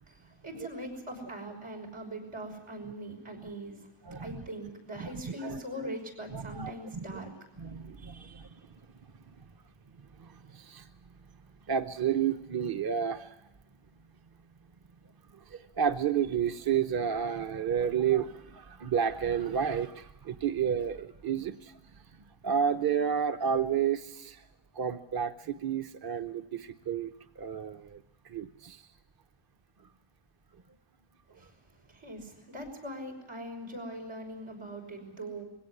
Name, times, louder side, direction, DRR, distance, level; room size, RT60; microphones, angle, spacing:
voice 1, 0.1-3.9 4.2-7.3 7.7-8.6 31.3-35.4, right 1 dB, 90° right, 0 dB, 5.9 m, -42 dB
voice 2, 4.1-4.4 5.0-5.6 6.3-7.3 7.6-8.5 9.3-9.4 10.0-10.9 11.7-13.4 15.3-24.5 24.7-28.9, right 8 dB, 50° right, 8 dB, 0.8 m, -31 dB
21.0 x 17.0 x 9.8 m, 0.96 s
wide cardioid pair, 90°, 49 cm